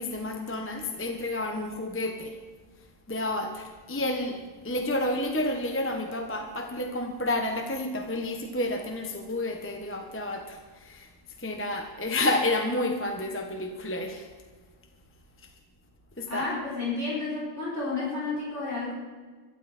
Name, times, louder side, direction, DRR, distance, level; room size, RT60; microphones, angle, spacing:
voice 1, 0.0-2.3 3.1-4.4 4.6-11.1 11.4-14.3 16.2-16.5, left 1 dB, 10° left, 4 dB, 1.2 m, -30 dB
voice 2, 16.3-18.9, left 3 dB, 45° left, -6 dB, 4.9 m, -31 dB
23.5 x 12.5 x 4.5 m, 1.5 s
omnidirectional pair, 1.7 m